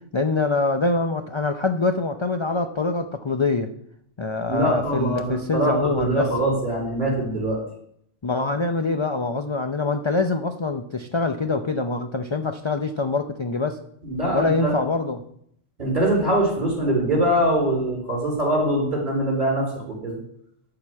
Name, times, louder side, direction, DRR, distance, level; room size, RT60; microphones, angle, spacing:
voice 1, 0.1-3.7 4.2-6.3 8.2-13.8 14.3-15.2, left 3 dB, 40° left, 6 dB, 0.4 m, -24 dB
voice 2, 4.5-7.6 14.0-14.8 15.8-20.2, right 1 dB, 40° right, -1 dB, 4.3 m, -23 dB
12.0 x 4.9 x 7.5 m, 0.71 s
omnidirectional pair, 1.3 m